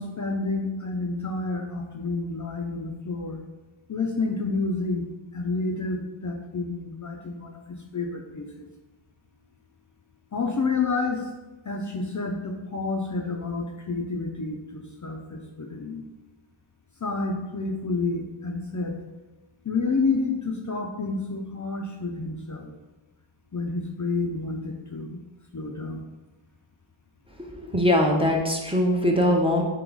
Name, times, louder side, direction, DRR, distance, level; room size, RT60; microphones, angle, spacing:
voice 1, 0.0-3.4 3.9-8.7 10.3-11.3 11.6-16.1 17.0-19.0 19.6-22.7 23.5-25.2 25.5-26.1, left 3 dB, 40° left, 1 dB, 0.5 m, -29 dB
voice 2, 27.4-29.6, left 1 dB, 10° right, -1 dB, 0.6 m, -22 dB
3.8 x 2.9 x 4.7 m, 1.1 s
wide cardioid pair, 75°, 48 cm